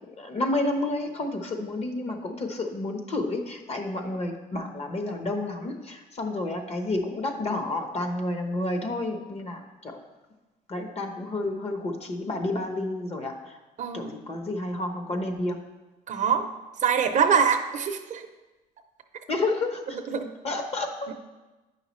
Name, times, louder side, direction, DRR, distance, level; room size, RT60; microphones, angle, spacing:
voice 1, 0.1-10.0 10.7-13.6 13.9-15.7 19.3-20.0 20.4-21.1, left 2 dB, 40° left, 5 dB, 1.0 m, -30 dB
voice 2, 13.8-14.1 16.1-16.5 16.8-18.3 20.1-20.3 21.1-21.2, right 7 dB, 45° right, 7 dB, 0.6 m, -24 dB
8.8 x 5.6 x 3.1 m, 1.1 s
cardioid pair, 110°, 17 cm